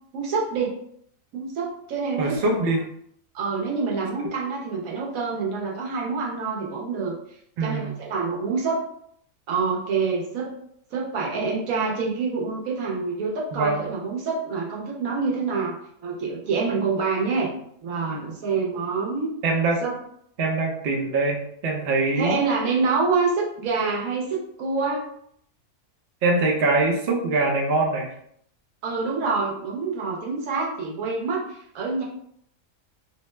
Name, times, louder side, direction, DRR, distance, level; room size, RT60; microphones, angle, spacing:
voice 1, 0.1-0.7 1.3-2.6 3.3-7.2 7.6-8.8 9.5-10.5 10.9-17.5 17.8-19.4 19.8-20.0 22.2-25.0 28.8-32.0, right 4 dB, 90° right, -3 dB, 1.3 m, -26 dB
voice 2, 2.2-2.8 4.2-4.3 7.6-8.0 13.5-13.8 19.4-19.8 20.4-22.4 26.2-28.1, right 3 dB, 55° right, 0 dB, 0.7 m, -23 dB
2.8 x 2.1 x 3.1 m, 0.69 s
omnidirectional pair, 1.4 m